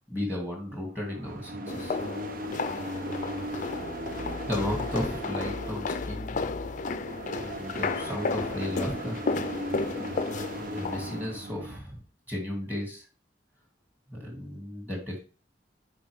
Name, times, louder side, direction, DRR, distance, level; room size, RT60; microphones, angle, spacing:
voice 1, 0.1-1.9 4.1-6.4 7.3-9.2 10.1-10.2 10.6-12.0 12.3-13.0 14.1-15.2, left 1 dB, 10° right, -1 dB, 2.4 m, -34 dB
sound 1, 0.7-11.8, right 1 dB, 55° right, 0.8 m, -38 dB
sound 2, 1.7-11.2, left 4 dB, 45° left, 0.5 m, -33 dB
8.4 x 4.5 x 3.5 m, 0.37 s
head